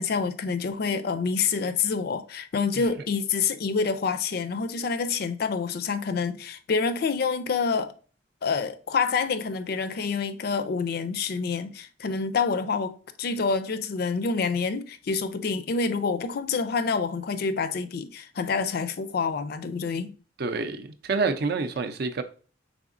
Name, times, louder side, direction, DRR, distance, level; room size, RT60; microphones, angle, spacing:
voice 1, 0.0-7.9 8.4-20.1, left 5 dB, 55° left, 0.4 m, -27 dB
voice 2, 20.4-22.2, right 4 dB, 55° right, 0.5 m, -28 dB
4.8 x 3.5 x 2.5 m
head